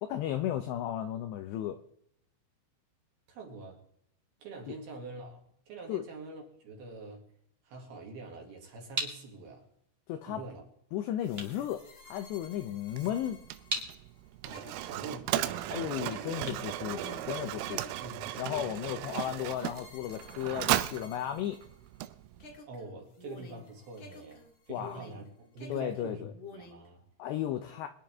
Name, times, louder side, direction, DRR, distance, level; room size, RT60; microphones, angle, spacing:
voice 1, 0.0-1.8 4.7-4.8 5.9-6.0 10.1-10.4 10.9-13.4 15.7-17.8 18.4-21.6 24.7-25.0 25.7-26.3 27.2-27.9, left 11 dB, 85° left, 2.4 m, -34 dB
voice 2, 3.3-3.8 4.4-7.3 7.6-9.7 10.3-10.6 14.4-15.7 18.0-18.3 22.7-27.0, right 3 dB, 55° right, 3.8 m, -45 dB
sound 1, 8.3-17.7, right 2 dB, 25° right, 1.2 m, -42 dB
sound 2, 11.2-22.1 22.4-25.3 25.6-26.9, left 4 dB, 60° left, 1.3 m, -51 dB
Mechanisms, 12.9-22.6, right 14 dB, 85° right, 3.1 m, -36 dB
24.0 x 10.0 x 3.5 m
omnidirectional pair, 5.8 m